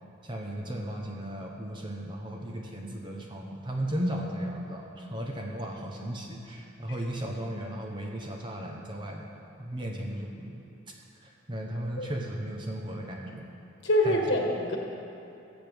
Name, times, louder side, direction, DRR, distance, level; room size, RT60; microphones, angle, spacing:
voice 1, 0.2-9.3 9.6-10.6 11.2-13.5 14.0-14.2, right 1 dB, 25° right, 0 dB, 0.9 m, -35 dB
voice 2, 13.8-14.8, left 1 dB, 60° left, 1 dB, 1.4 m, -25 dB
19.5 x 8.0 x 3.5 m, 2.7 s
head